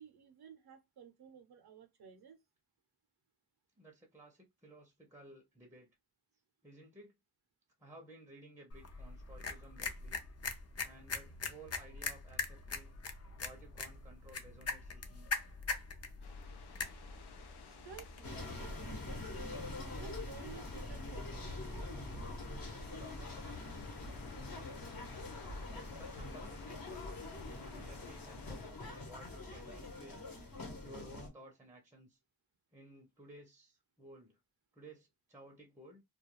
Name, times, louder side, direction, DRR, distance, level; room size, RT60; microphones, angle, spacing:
voice 1, 0.0-2.4 17.6-19.5 20.0-22.3, right 7 dB, 75° right, 0.6 m, -55 dB
voice 2, 3.8-5.9 6.6-7.2 7.8-10.2 10.8-13.0 13.4-15.3 25.7-27.0 27.5-30.3 30.8-32.2 32.7-34.4 34.7-36.0, right 1 dB, 5° right, 0.5 m, -56 dB
sound 1, 8.7-18.2, left 4 dB, 40° left, 0.5 m, -42 dB
sound 2, 16.2-28.7, left 6 dB, 85° left, 0.6 m, -56 dB
sound 3, 18.2-31.3, left 2 dB, 60° left, 1.0 m, -44 dB
2.3 x 2.2 x 2.9 m
wide cardioid pair, 155°, 38 cm